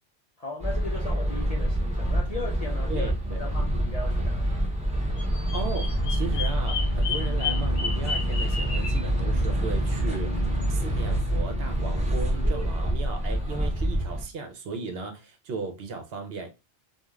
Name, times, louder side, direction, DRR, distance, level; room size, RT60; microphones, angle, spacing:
voice 1, 0.4-3.1 3.4-4.6, left 3 dB, 55° left, 0.4 m, -37 dB
sound 1, 0.6-14.2, equal, 10° right, 0.4 m, -26 dB
voice 2, 2.9-3.5 5.5-16.5, right 4 dB, 65° right, 0.7 m, -36 dB
Bird vocalization bird call bird song, 5.2-9.0, left 5 dB, 70° left, 0.9 m, -33 dB
sound 2, 6.0-12.6, right 3 dB, 35° right, 1.2 m, -40 dB
2.3 x 2.3 x 3.0 m
omnidirectional pair, 1.2 m